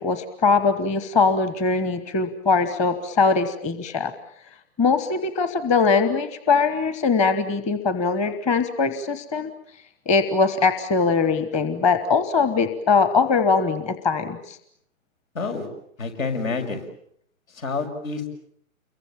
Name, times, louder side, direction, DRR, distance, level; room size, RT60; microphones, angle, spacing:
voice 1, 0.0-4.1 4.8-9.5 10.1-14.6, left 4 dB, 15° left, 10 dB, 1.2 m, -21 dB
voice 2, 15.3-15.7 16.0-16.8 17.5-18.3, left 4 dB, 70° left, 6 dB, 6.4 m, -28 dB
29.0 x 23.0 x 7.3 m, 0.69 s
hypercardioid pair, 135°, 42 cm